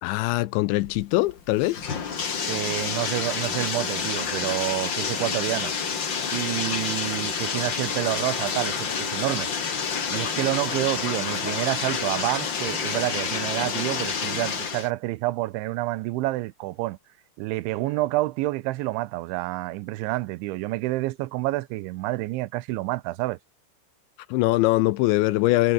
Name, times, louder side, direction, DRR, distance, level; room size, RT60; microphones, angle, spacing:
voice 1, 0.0-1.8 24.3-25.7, left 18 dB, 80° left, 2.8 m, -22 dB
Bathtub (filling or washing), 0.8-14.9, left 6 dB, 45° left, 1.5 m, -29 dB
voice 2, 2.5-5.7 6.3-9.5 10.1-17.0 17.4-23.4, right 19 dB, 80° right, 3.0 m, -28 dB
omnidirectional pair, 5.7 m